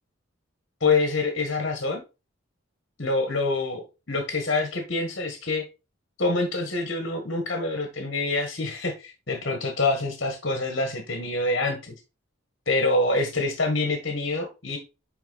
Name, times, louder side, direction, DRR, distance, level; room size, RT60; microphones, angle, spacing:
voice 1, 0.8-2.0 3.0-5.6 6.2-12.0 12.7-14.8, left 3 dB, 60° left, 4 dB, 1.6 m, -26 dB
10.0 x 3.5 x 4.0 m, 0.28 s
head